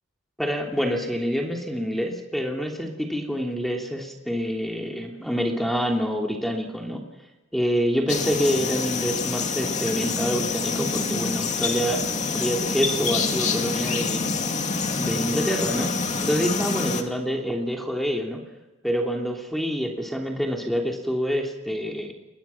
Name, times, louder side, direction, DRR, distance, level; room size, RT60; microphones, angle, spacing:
voice 1, 0.4-7.1 7.5-12.0 12.3-14.2 15.0-15.9 16.2-18.4 18.8-22.1, equal, ahead, 1 dB, 3.1 m, -27 dB
sound 1, 8.1-17.0, left 4 dB, 30° left, 2.3 m, -26 dB
29.5 x 22.5 x 5.9 m, 1.0 s
head